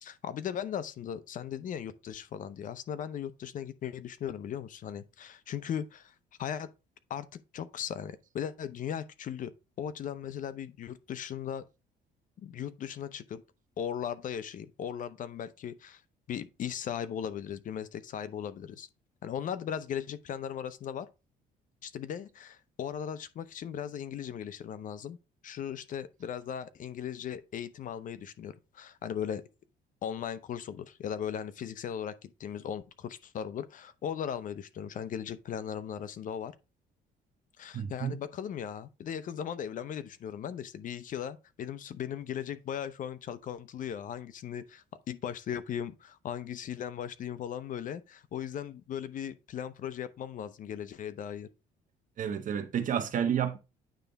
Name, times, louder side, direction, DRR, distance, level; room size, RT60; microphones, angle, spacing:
voice 1, 0.0-6.7 7.1-9.5 9.8-11.7 12.4-13.4 13.8-16.0 16.3-18.9 19.2-21.1 21.8-25.2 25.4-29.4 30.0-36.5 37.6-51.5, left 9 dB, 50° left, 0.7 m, -38 dB
voice 2, 37.7-38.2 52.2-53.6, right 8 dB, 50° right, 1.2 m, -30 dB
9.2 x 3.4 x 4.0 m
cardioid pair, 110°, 17 cm